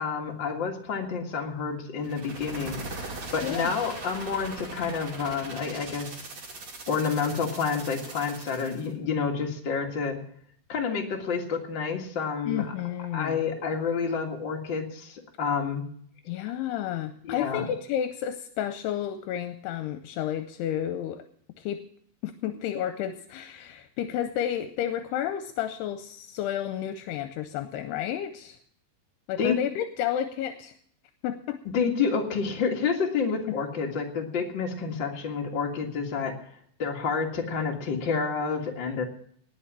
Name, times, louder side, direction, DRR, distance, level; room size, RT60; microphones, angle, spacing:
voice 1, 0.0-3.1 3.3-6.1 6.9-10.2 10.7-12.7 13.1-15.8 17.2-17.7 29.4-29.6 31.7-36.4 36.8-39.0, left 5 dB, 45° left, 1 dB, 1.6 m, -29 dB
sound 1, 2.0-8.9, right 2 dB, 45° right, 3.6 m, -40 dB
voice 2, 3.4-3.7 12.5-13.4 16.3-21.2 21.6-21.8 22.2-28.6 29.3-30.7 31.2-31.6 33.5-33.6, left 10 dB, 80° left, 9 dB, 2.7 m, -31 dB
19.0 x 6.7 x 7.4 m, 0.63 s
omnidirectional pair, 4.8 m